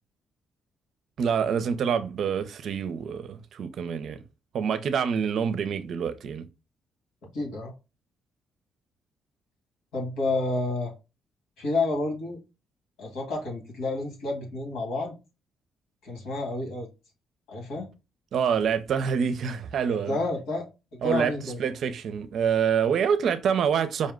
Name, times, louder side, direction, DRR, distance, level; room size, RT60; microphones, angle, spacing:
voice 1, 1.2-4.2 4.5-6.4 18.3-20.2 21.0-21.3 21.6-24.1, right 7 dB, 65° right, 0.6 m, -26 dB
voice 2, 7.3-7.7 9.9-10.9 11.6-12.4 13.0-15.1 16.0-16.9 17.5-17.9 19.9-20.7 21.0-21.6, left 2 dB, 85° left, 1.9 m, -30 dB
5.2 x 2.1 x 3.7 m
cardioid pair, 90°, 0 cm